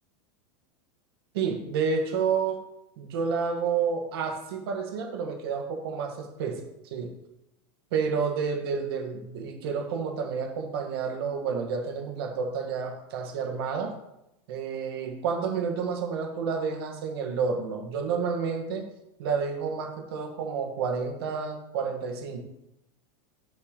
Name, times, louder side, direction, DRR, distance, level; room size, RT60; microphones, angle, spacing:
voice 1, 1.3-2.6 3.0-7.1 7.9-14.0 14.5-18.9 19.2-22.4, right 5 dB, 60° right, 4 dB, 1.5 m, -30 dB
6.8 x 4.4 x 6.5 m, 0.87 s
supercardioid pair, 175°, 14 cm